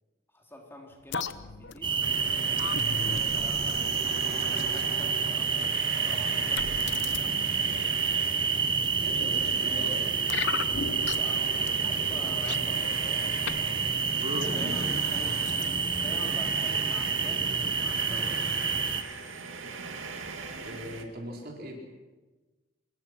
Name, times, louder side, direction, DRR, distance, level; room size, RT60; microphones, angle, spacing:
voice 1, 0.3-2.0 3.3-3.9 4.2-7.4 11.1-13.9 14.5-15.5 16.0-18.5, left 1 dB, 10° left, 0 dB, 3.6 m, -46 dB
sound 1, 1.1-4.9 5.6-5.8 6.6-7.2 7.7-8.3 9.0-9.6 10.3-11.4 11.7-11.8 12.1-13.6 13.9-14.8 15.5-16.1 16.4-16.5, left 6 dB, 65° left, 0.9 m, -38 dB
sound 2, 1.8-19.0, right 5 dB, 25° right, 1.0 m, -28 dB
sound 3, 2.0-21.0, right 4 dB, 85° right, 2.3 m, -39 dB
voice 2, 2.9-3.3 9.0-10.0 14.2-14.9 20.6-21.8, equal, 50° right, 1 dB, 4.6 m, -39 dB
25.5 x 21.5 x 6.1 m, 1.2 s
head